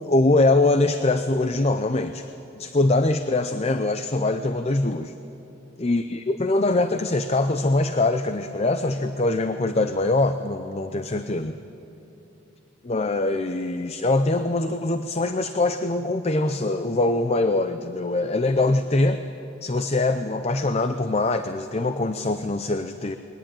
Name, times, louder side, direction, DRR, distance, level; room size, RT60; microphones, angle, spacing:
voice 1, 0.0-2.3 2.6-5.1 5.8-11.6 12.8-19.2 19.6-23.2, left 2 dB, 30° left, 9 dB, 0.6 m, -23 dB
21.5 x 19.0 x 9.0 m, 2.9 s
head